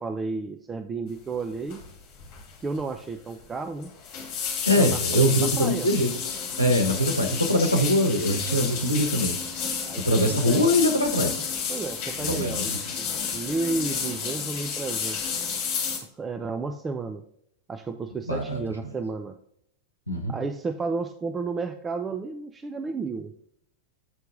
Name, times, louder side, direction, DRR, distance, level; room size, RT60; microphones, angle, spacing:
voice 1, 0.0-1.8 2.6-3.9 4.7-5.9 9.8-10.6 11.7-15.6 16.2-17.2 17.7-19.3 20.3-23.3, right 4 dB, 15° right, 7 dB, 0.5 m, -32 dB
sound 1, 1.7-1.9 2.2-2.5 2.8-2.9 3.8-16.0, left 6 dB, 40° left, 2.0 m, -31 dB
voice 2, 4.7-6.1 6.6-9.4 10.0-11.3 12.2-12.8 18.3-18.6 20.1-20.3, equal, 90° left, 4 dB, 0.9 m, -23 dB
7.8 x 4.6 x 3.7 m, 0.70 s
figure-of-eight pair, 90°, 0 cm